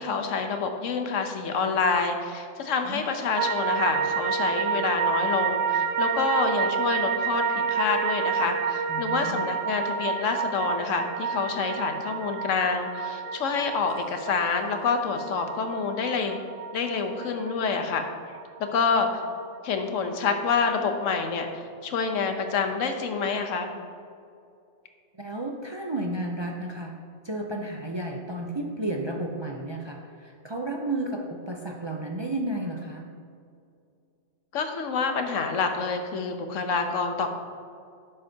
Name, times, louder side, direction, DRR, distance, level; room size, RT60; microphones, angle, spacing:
voice 1, 0.0-16.4 16.7-18.0 18.7-19.1 19.6-23.7 34.5-37.3, left 5 dB, 90° left, 5 dB, 1.2 m, -27 dB
sound 1, 3.4-19.7 20.0-20.1, right 6 dB, 65° right, 0.8 m, -29 dB
voice 2, 8.9-9.5 25.2-26.9 27.2-33.1, right 1 dB, 35° right, 1 dB, 0.4 m, -32 dB
11.0 x 7.4 x 2.8 m, 2.4 s
omnidirectional pair, 1.3 m